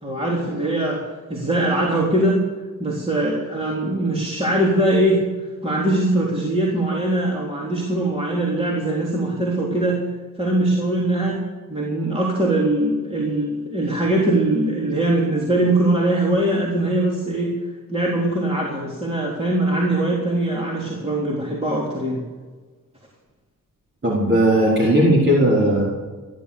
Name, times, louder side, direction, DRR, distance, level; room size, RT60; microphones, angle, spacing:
voice 1, 0.0-1.0 1.3-2.4 2.8-5.2 5.6-10.0 10.4-11.4 11.7-17.5 17.9-22.2, right 1 dB, 15° right, -4 dB, 3.7 m, -21 dB
voice 2, 24.0-25.8, right 1 dB, 35° right, -5 dB, 4.5 m, -17 dB
15.5 x 11.5 x 7.0 m, 1.4 s
cardioid pair, 85°, 34 cm